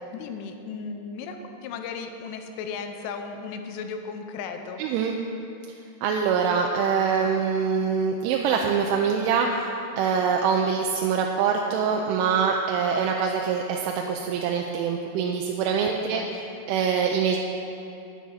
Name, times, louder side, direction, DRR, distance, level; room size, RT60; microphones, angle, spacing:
voice 1, 0.1-4.8 16.1-16.5, left 5 dB, 85° left, 6 dB, 3.2 m, -36 dB
voice 2, 4.8-5.1 6.0-16.4 16.7-17.4, right 6 dB, 85° right, 1 dB, 3.1 m, -24 dB
9.6 x 9.4 x 5.7 m, 2.8 s
omnidirectional pair, 5.5 m